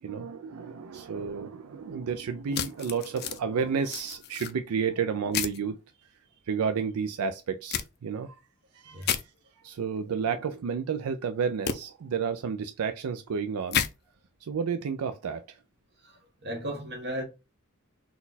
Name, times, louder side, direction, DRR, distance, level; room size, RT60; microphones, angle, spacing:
voice 1, 0.0-5.8 6.5-8.4 8.7-9.2 9.6-13.8 14.4-15.6, right 6 dB, 70° right, 0.4 m, -31 dB
sound 1, 2.5-3.4 3.9-4.5 5.3-5.6 7.7-7.9 9.0-9.2 11.7-11.8 13.7-13.9, left 9 dB, 45° left, 0.4 m, -30 dB
voice 2, 16.4-17.2, equal, 50° right, 1.3 m, -35 dB
4.1 x 2.3 x 4.0 m
head